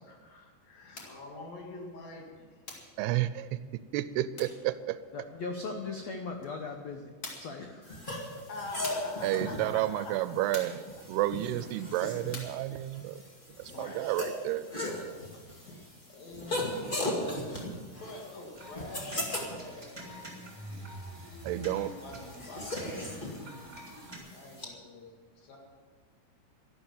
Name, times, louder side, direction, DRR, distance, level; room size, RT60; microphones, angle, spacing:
voice 1, 0.1-2.6 8.5-10.5 13.6-14.2 14.9-20.6 22.0-23.2 24.3-25.6, left 2 dB, 65° left, 0 dB, 3.7 m, -46 dB
sound 1, 0.9-1.2 2.7-3.0 4.4-4.7 6.4-6.5 7.2-7.6 8.8-9.2 10.5-10.9 12.3-12.7, left 3 dB, 40° left, 2.2 m, -43 dB
voice 2, 3.0-3.6 3.9-5.0 9.2-10.8 11.1-13.2 13.6-14.7 21.4-21.9, right 14 dB, 85° right, 14 dB, 2.5 m, -31 dB
voice 3, 5.1-8.1, left 4 dB, 85° left, 3 dB, 1.5 m, -39 dB
sound 2, 7.9-24.7, left 1 dB, 25° left, 1.1 m, -39 dB
sound 3, 18.5-24.2, equal, 5° right, 2.9 m, -46 dB
12.5 x 12.0 x 7.3 m, 1.5 s
omnidirectional pair, 4.7 m